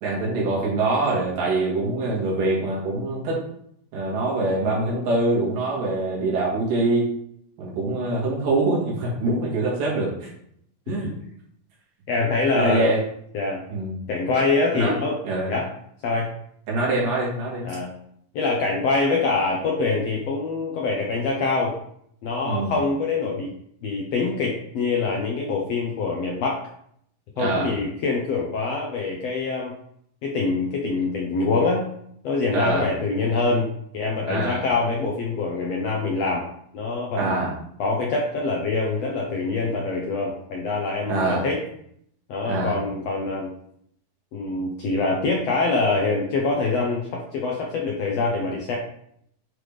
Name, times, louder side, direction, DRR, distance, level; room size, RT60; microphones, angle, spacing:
voice 1, 0.0-3.4 3.9-7.1 7.6-10.3 10.9-11.1 12.5-13.0 13.7-14.0 14.7-14.9 15.2-15.5 16.7-17.7 22.4-22.8 27.4-27.7 32.5-32.9 34.3-34.6 37.2-37.5 41.1-41.4 42.5-42.8, right 2 dB, 75° right, -4 dB, 3.4 m, -24 dB
voice 2, 12.1-12.9 13.3-13.6 14.1-15.2 15.5-15.7 16.0-16.3 17.6-17.9 18.3-21.8 22.2-23.5 23.8-26.6 27.4-29.7 30.2-31.8 32.2-36.4 36.7-37.4 37.8-41.6 42.3-43.5 44.3-48.8, left 3 dB, 70° left, -2 dB, 1.6 m, -24 dB
9.8 x 3.5 x 3.3 m, 0.68 s
omnidirectional pair, 3.9 m